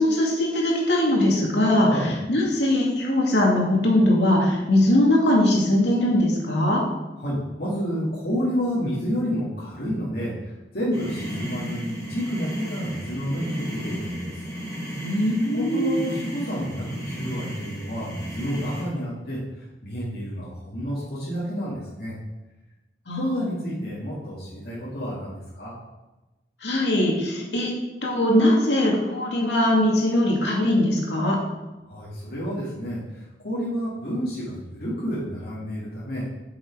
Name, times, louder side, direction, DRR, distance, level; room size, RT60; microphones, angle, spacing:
voice 1, 0.0-1.9 2.3-6.8 15.0-16.0 23.1-23.7 26.6-27.7 28.0-31.4, left 1 dB, 85° left, -2 dB, 2.3 m, -21 dB
voice 2, 7.2-14.4 15.5-22.1 23.1-25.7 31.8-36.2, equal, 60° left, -9 dB, 2.3 m, -30 dB
sound 1, 10.9-18.8, right 1 dB, 20° left, 2.9 m, -34 dB
7.8 x 6.5 x 4.8 m, 1.1 s
head